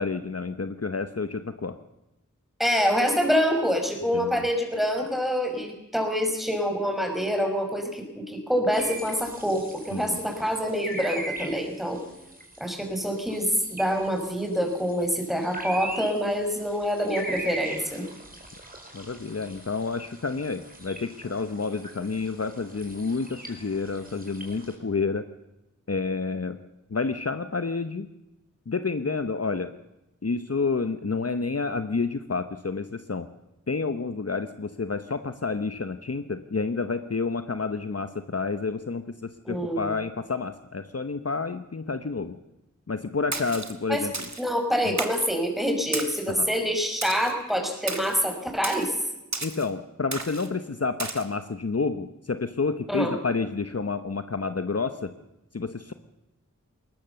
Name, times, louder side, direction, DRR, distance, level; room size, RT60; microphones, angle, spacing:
voice 1, 0.0-1.8 4.1-4.5 9.9-10.2 18.9-25.3 25.9-26.6 26.9-28.1 28.7-29.7 30.2-33.3 33.7-42.3 42.9-44.3 44.9-45.0 46.3-46.5 49.4-55.1 55.5-55.9, left 4 dB, 50° left, 10 dB, 1.0 m, -29 dB
voice 2, 2.6-12.0 12.6-18.0 39.4-39.9 43.9-44.0 44.4-48.9 52.9-53.1, equal, ahead, 4 dB, 5.2 m, -26 dB
sound 1, 8.7-24.7, right 1 dB, 30° right, 4.5 m, -41 dB
Splash splatter, 43.3-43.7 44.1-44.5 45.0-45.3 45.9-46.3 47.0-47.3 47.9-48.2 48.6-48.9 49.3-49.7 50.1-50.5 51.0-51.2, right 3 dB, 60° right, 2.1 m, -33 dB
20.5 x 19.5 x 6.9 m, 0.92 s
wide cardioid pair, 55°, 31 cm